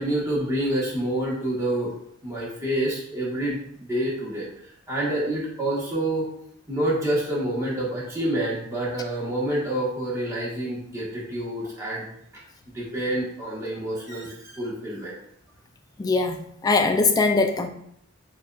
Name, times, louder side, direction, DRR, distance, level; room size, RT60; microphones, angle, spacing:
voice 1, 0.0-1.9 2.2-4.5 4.9-6.3 6.7-12.1 12.7-15.1, right 1 dB, 15° right, -7 dB, 1.2 m, -27 dB
voice 2, 16.0-17.7, left 3 dB, 20° left, 6 dB, 0.3 m, -21 dB
6.9 x 2.5 x 2.3 m, 0.69 s
head